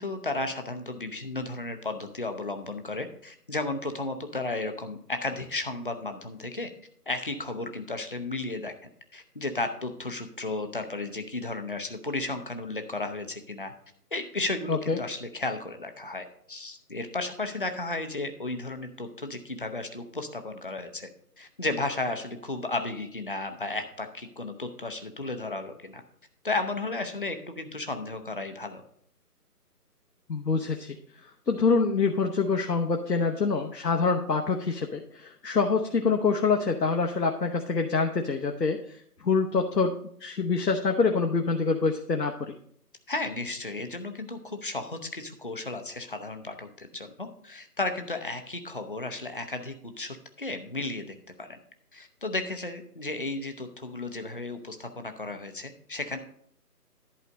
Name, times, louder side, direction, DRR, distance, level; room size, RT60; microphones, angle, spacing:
voice 1, 0.0-6.7 7.1-8.7 9.1-13.7 14.1-21.1 21.4-26.0 26.4-28.8 43.1-51.6 51.9-56.2, left 2 dB, 35° left, 7 dB, 0.6 m, -34 dB
voice 2, 14.7-15.0 30.3-31.0 31.5-39.0 39.2-39.9 40.2-42.5, left 4 dB, 85° left, 2 dB, 1.0 m, -25 dB
11.0 x 4.2 x 5.2 m, 0.64 s
figure-of-eight pair, 155°, 48 cm